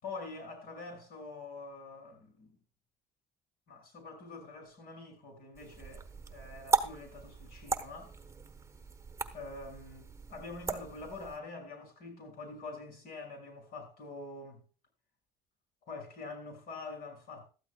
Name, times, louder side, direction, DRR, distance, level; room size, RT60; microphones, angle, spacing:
voice 1, 0.0-2.6 3.7-8.1 9.3-14.6 15.8-17.5, left 3 dB, 65° left, 6.3 m, -45 dB
sound 1, 5.5-11.4, right 4 dB, 15° right, 1.1 m, -37 dB
17.5 x 13.0 x 2.3 m
cardioid pair, 110°, 17 cm